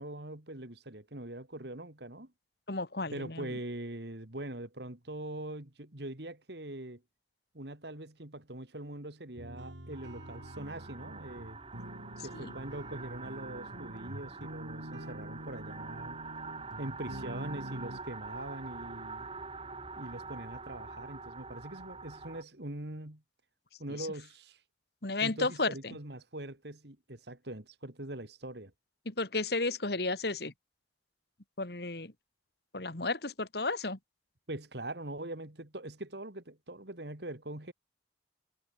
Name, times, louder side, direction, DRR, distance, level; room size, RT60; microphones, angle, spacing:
voice 1, 0.0-2.3 3.1-7.0 7.5-11.6 12.2-16.2 16.8-19.3 20.0-23.2 23.8-24.6 25.2-28.7 34.5-37.7, right 1 dB, 65° right, 2.6 m, -42 dB
voice 2, 2.7-3.5 12.3-12.5 25.0-26.0 29.1-30.5 31.6-32.1 32.7-34.0, left 3 dB, 60° left, 2.1 m, -33 dB
sound 1, 9.4-18.0, right 1 dB, 80° right, 4.0 m, -46 dB
sound 2, 9.9-22.4, right 4 dB, 30° right, 2.4 m, -45 dB
head